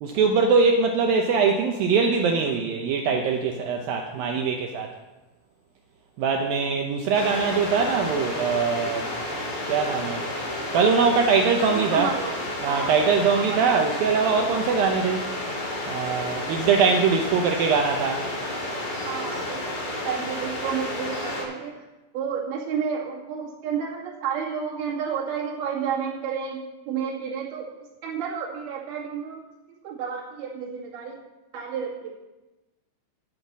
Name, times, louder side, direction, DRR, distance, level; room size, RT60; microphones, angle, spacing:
voice 1, 0.0-4.9 6.2-9.1 9.7-10.2 10.7-12.1 12.6-15.2 15.9-18.2, right 5 dB, 85° right, 3 dB, 2.0 m, -22 dB
voice 2, 4.2-4.6 11.6-12.4 12.7-13.7 19.0-21.9 22.1-27.7 28.0-29.4 29.8-31.2 31.5-32.1, right 7 dB, 60° right, -4 dB, 4.1 m, -31 dB
sound 1, 7.1-21.4, left 1 dB, 75° left, 7.4 m, -31 dB
11.5 x 8.1 x 7.4 m, 1.1 s
omnidirectional pair, 5.2 m